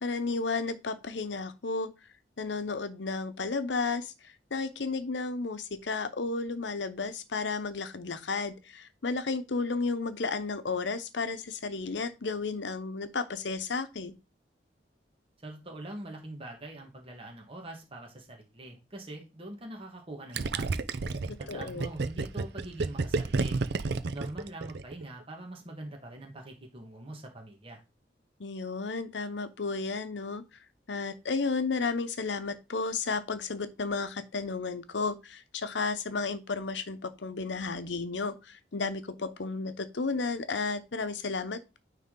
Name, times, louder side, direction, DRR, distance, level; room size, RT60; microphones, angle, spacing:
voice 1, 0.0-1.9 2.4-14.1 21.5-21.9 28.4-30.4 30.9-41.8, left 4 dB, 85° left, 0.8 m, -33 dB
voice 2, 15.4-20.7 21.4-23.6 24.1-27.8, right 1 dB, 35° right, 1.5 m, -43 dB
Gurgling, 20.3-25.0, right 3 dB, 65° right, 0.5 m, -30 dB
9.4 x 3.6 x 3.8 m
head